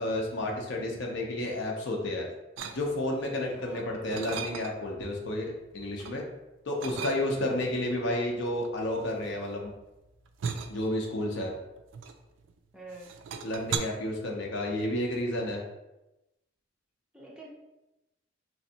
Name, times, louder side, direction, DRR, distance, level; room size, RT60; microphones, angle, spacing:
voice 1, 0.0-2.3 2.7-6.2 6.7-9.7 10.7-11.5 13.4-15.6, left 1 dB, 70° left, 0 dB, 0.6 m, -31 dB
sound 1, 2.6-3.2 3.7-5.0 5.4-6.2 6.8-7.6 8.4-12.6 12.9-13.8, right 6 dB, 80° right, 0.4 m, -38 dB
voice 2, 3.6-4.0 7.4-7.7 12.7-13.2 17.1-17.5, right 2 dB, 5° right, -4 dB, 0.5 m, -47 dB
3.3 x 3.1 x 2.7 m, 0.96 s
head